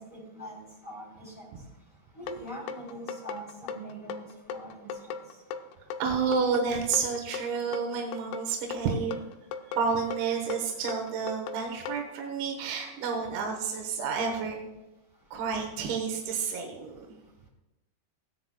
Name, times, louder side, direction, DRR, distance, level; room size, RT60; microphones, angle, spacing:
voice 1, 0.0-1.5 2.1-5.1, right 1 dB, 20° left, -3 dB, 2.8 m, -43 dB
sound 1, 2.3-12.0, left 6 dB, 80° left, 2.5 m, -38 dB
voice 2, 6.0-9.2 9.8-14.6 15.3-17.2, right 5 dB, 90° right, 3 dB, 3.5 m, -30 dB
16.5 x 10.5 x 2.3 m, 1.0 s
omnidirectional pair, 5.1 m